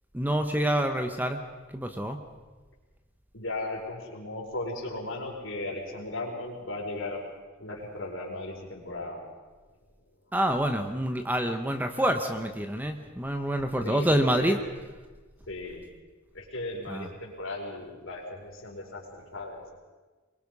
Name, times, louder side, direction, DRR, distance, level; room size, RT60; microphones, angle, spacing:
voice 1, 0.1-1.4 1.7-2.2 10.3-14.6 16.9-17.1, right 1 dB, 10° right, 6 dB, 1.1 m, -27 dB
voice 2, 3.3-7.2 7.6-9.2 13.8-14.6 15.5-15.8 16.3-19.6, left 2 dB, 65° left, -1 dB, 5.2 m, -36 dB
23.5 x 22.5 x 5.5 m, 1.3 s
head